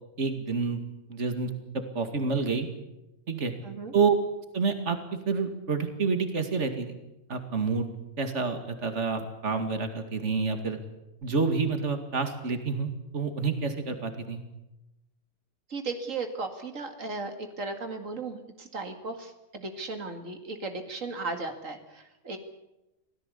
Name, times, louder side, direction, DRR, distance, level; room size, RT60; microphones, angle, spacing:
voice 1, 0.2-0.8 1.1-2.7 3.3-3.5 3.9-4.1 4.5-5.0 5.3-7.0 7.3-7.9 8.2-10.8 11.2-14.4, right 4 dB, 65° right, 7 dB, 2.6 m, -28 dB
voice 2, 3.6-3.9 15.7-22.4, right 3 dB, 85° right, 6 dB, 2.5 m, -36 dB
25.5 x 17.5 x 8.3 m, 0.95 s
omnidirectional pair, 1.3 m